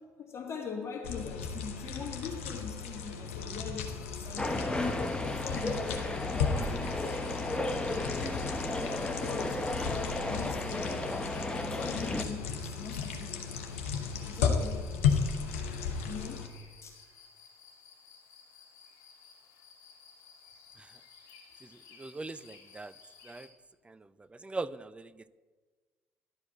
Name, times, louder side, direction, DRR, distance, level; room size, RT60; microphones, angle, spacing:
voice 1, 0.2-4.7 5.3-7.2 9.0-11.1 11.6-13.7 14.1-15.2 16.1-16.5 16.8-17.0, left 5 dB, 40° left, 0 dB, 2.4 m, -42 dB
sound 1, 1.0-16.5, left 6 dB, 80° left, 0.9 m, -35 dB
sound 2, 3.8-23.5, left 6 dB, 60° left, 2.4 m, -56 dB
sound 3, 4.4-12.2, left 2 dB, 10° left, 1.1 m, -34 dB
voice 2, 21.6-22.9 23.2-23.5 23.8-25.3, right 3 dB, 15° right, 16 dB, 0.4 m, -41 dB
11.5 x 4.8 x 7.4 m, 1.4 s
hypercardioid pair, 55°, 7 cm